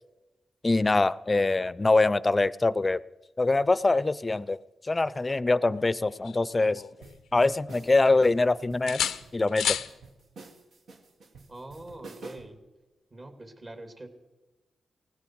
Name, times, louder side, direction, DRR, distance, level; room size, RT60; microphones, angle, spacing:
voice 1, 0.6-3.0 3.4-4.6 4.8-6.8 7.3-9.8, left 3 dB, 30° left, 19 dB, 0.5 m, -24 dB
sound 1, 5.7-7.3 7.6-8.5 8.9-9.9 11.8-12.0, left 9 dB, 90° left, 0.5 m, -33 dB
sound 2, 7.0-12.6, right 3 dB, 75° right, 1.6 m, -49 dB
voice 2, 11.5-12.6 13.1-14.1, right 2 dB, 40° right, 5 dB, 2.6 m, -44 dB
18.5 x 16.0 x 4.7 m, 1.1 s
cardioid pair, 50°, 0 cm